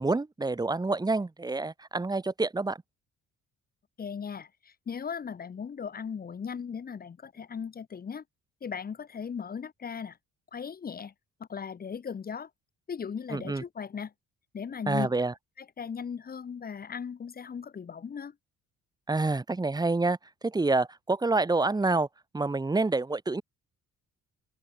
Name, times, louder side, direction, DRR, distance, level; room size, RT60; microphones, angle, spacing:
voice 1, 0.0-2.8 13.3-13.6 14.9-15.3 19.1-20.2 20.4-22.1 22.3-23.4, right 3 dB, 10° right, 2.4 m, -27 dB
voice 2, 4.0-8.2 8.6-10.2 10.5-11.1 11.5-12.5 12.9-14.1 14.5-15.1 15.6-18.3, left 6 dB, 30° left, 1.6 m, -37 dB
open air
cardioid pair, 150°, 31 cm